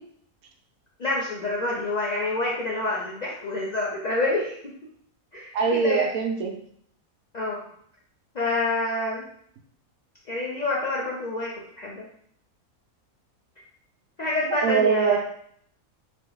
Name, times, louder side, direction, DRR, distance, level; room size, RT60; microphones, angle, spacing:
voice 1, 1.0-4.8 5.3-6.1 7.3-7.6 8.3-9.2 10.3-12.1 14.2-15.2, left 2 dB, 65° left, -4 dB, 0.4 m, -27 dB
voice 2, 5.5-6.5 14.6-15.2, right 6 dB, 80° right, 3 dB, 1.1 m, -22 dB
3.5 x 2.8 x 3.8 m, 0.65 s
omnidirectional pair, 1.5 m